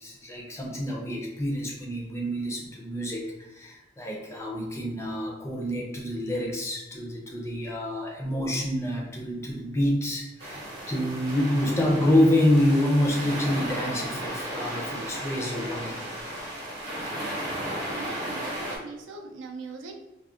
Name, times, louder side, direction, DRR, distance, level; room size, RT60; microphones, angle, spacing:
voice 1, 0.0-16.0, left 1 dB, 15° left, -1 dB, 0.4 m, -27 dB
sound 1, 10.4-18.8, right 1 dB, 60° right, 0.8 m, -34 dB
voice 2, 17.9-19.9, right 4 dB, 80° right, 2 dB, 0.4 m, -40 dB
3.5 x 2.1 x 2.4 m, 0.97 s
head